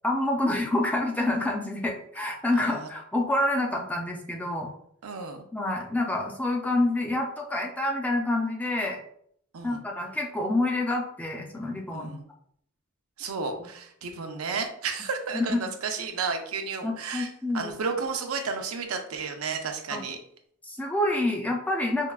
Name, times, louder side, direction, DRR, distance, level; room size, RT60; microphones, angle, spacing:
voice 1, 0.0-4.7 5.5-9.0 9.6-12.1 15.3-15.6 16.8-17.7 19.9-20.0 20.6-22.1, left 1 dB, 5° left, 1 dB, 0.4 m, -27 dB
voice 2, 2.6-2.9 5.0-5.4 9.5-9.8 11.9-12.2 13.2-20.2, right 5 dB, 80° right, 4 dB, 0.5 m, -32 dB
4.4 x 2.2 x 2.3 m, 0.66 s
head